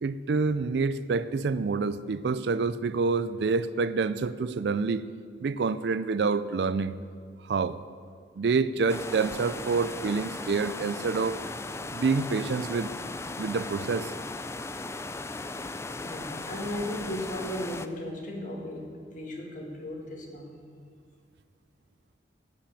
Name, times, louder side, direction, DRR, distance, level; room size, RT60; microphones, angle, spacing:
voice 1, 0.0-5.1 5.4-6.9 7.4-7.8 8.4-11.4 11.9-12.9 13.4-14.1, right 4 dB, 65° right, 15 dB, 0.4 m, -27 dB
sound 1, 8.9-17.9, left 3 dB, 15° left, 0.4 m, -37 dB
voice 2, 16.0-18.9 19.1-20.5, left 1 dB, 45° left, 1 dB, 2.0 m, -36 dB
17.0 x 5.9 x 8.4 m, 2.2 s
head